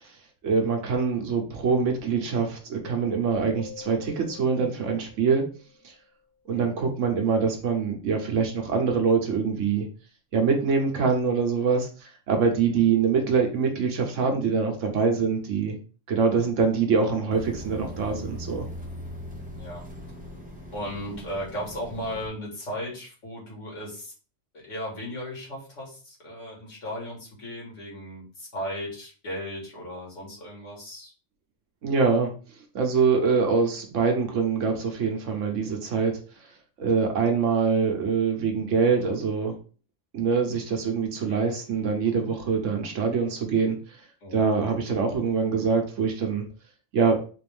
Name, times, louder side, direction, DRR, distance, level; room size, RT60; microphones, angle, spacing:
voice 1, 0.4-5.4 5.8-5.9 6.5-9.9 10.3-11.9 12.3-15.8 16.1-18.7 31.8-32.3 32.7-36.1 36.8-39.5 40.1-43.8 44.3-46.4 46.9-47.2, right 5 dB, 90° right, 3 dB, 1.3 m, -24 dB
sound 1, 3.3-6.0, left 6 dB, 40° right, 1.4 m, -45 dB
sound 2, 17.3-22.3, equal, 10° right, 0.6 m, -40 dB
voice 2, 19.5-19.9 20.7-24.1 24.5-31.1 41.3-41.4 44.2-44.5, equal, 85° left, -3 dB, 2.1 m, -36 dB
4.2 x 2.6 x 3.5 m, 0.37 s
omnidirectional pair, 1.2 m